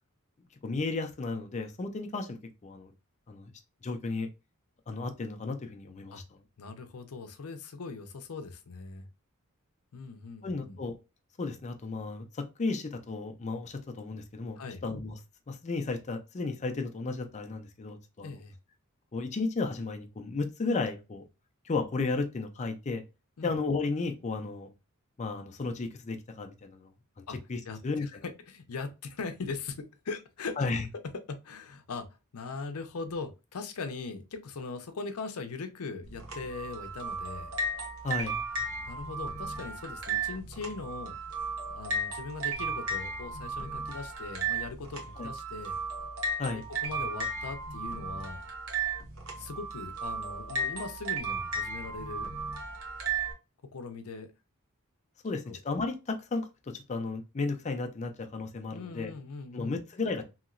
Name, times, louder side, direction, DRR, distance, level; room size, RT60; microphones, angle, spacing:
voice 1, 0.6-2.9 3.3-3.5 3.8-4.3 4.9-6.2 10.4-10.9 11.4-15.2 15.5-18.4 19.1-21.2 21.6-23.0 23.4-24.7 25.2-26.9 27.2-28.2 30.6-30.9 38.0-38.4 45.2-45.3 46.4-46.6 55.2-59.1 59.5-60.2, left 3 dB, 30° left, 0.4 m, -34 dB
voice 2, 6.6-9.1 9.9-10.8 14.6-14.8 18.2-18.5 23.4-23.5 27.3-27.4 27.7-30.6 31.3-32.1 32.3-37.5 38.9-41.2 41.7-45.8 46.5-48.5 49.4-52.3 53.7-54.3 55.5-55.6 58.7-59.8, left 4 dB, 90° left, 0.6 m, -40 dB
sound 1, 36.0-53.3, right 3 dB, 75° right, 0.9 m, -35 dB
2.9 x 2.8 x 2.5 m
head